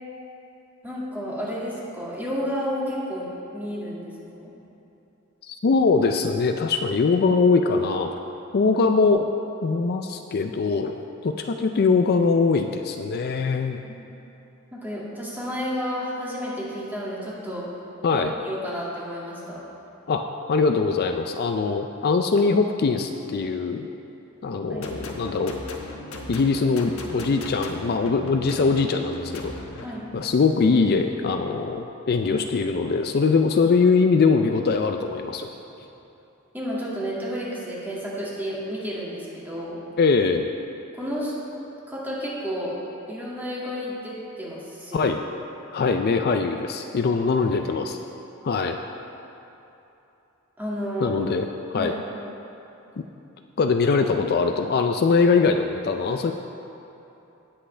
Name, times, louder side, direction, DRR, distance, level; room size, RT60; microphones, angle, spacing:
voice 1, 0.8-4.5 13.9-14.0 14.7-17.7 18.1-19.6 24.7-24.9 29.8-30.1 36.5-39.8 40.9-41.3 41.9-42.7 43.1-45.1 47.4-47.8 50.6-51.1 51.7-52.0, equal, 10° right, -7 dB, 2.2 m, -31 dB
voice 2, 5.4-8.2 8.5-9.3 9.6-13.8 18.0-18.3 20.1-20.2 20.5-23.9 24.4-25.6 26.3-29.5 30.1-35.5 40.0-40.5 44.9-45.2 45.7-48.0 48.4-48.8 51.0-51.5 51.7-51.9 53.6-56.3, left 4 dB, 50° left, 5 dB, 0.4 m, -22 dB
sound 1, 24.7-29.8, left 2 dB, 90° left, 1.2 m, -38 dB
18.0 x 7.8 x 3.3 m, 2.9 s
head